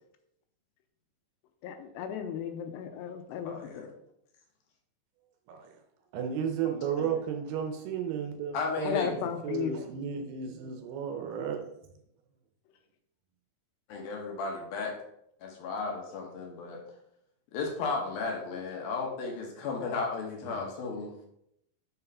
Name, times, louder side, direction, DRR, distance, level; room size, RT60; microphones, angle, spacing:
voice 1, 1.6-3.9 8.9-9.8, left 8 dB, 85° left, 7 dB, 2.8 m, -35 dB
voice 2, 3.4-3.9 7.0-7.1 8.5-9.1 13.9-15.0 15.4-16.8 17.5-21.1, left 4 dB, 70° left, 1 dB, 2.6 m, -34 dB
voice 3, 6.1-11.8 20.5-20.6, right 7 dB, 80° right, 5 dB, 2.5 m, -34 dB
6.4 x 4.6 x 5.4 m, 0.77 s
omnidirectional pair, 5.0 m